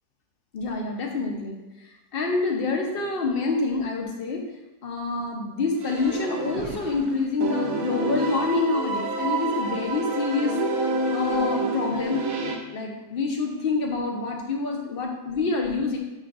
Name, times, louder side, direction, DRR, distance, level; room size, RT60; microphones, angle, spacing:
voice 1, 0.5-4.4 4.8-12.2 12.7-16.0, left 3 dB, 45° left, 2 dB, 0.8 m, -27 dB
sound 1, 5.8-7.1 7.4-12.6, right 2 dB, 60° right, 1.2 m, -28 dB
8.6 x 5.7 x 2.5 m, 1.0 s
omnidirectional pair, 1.9 m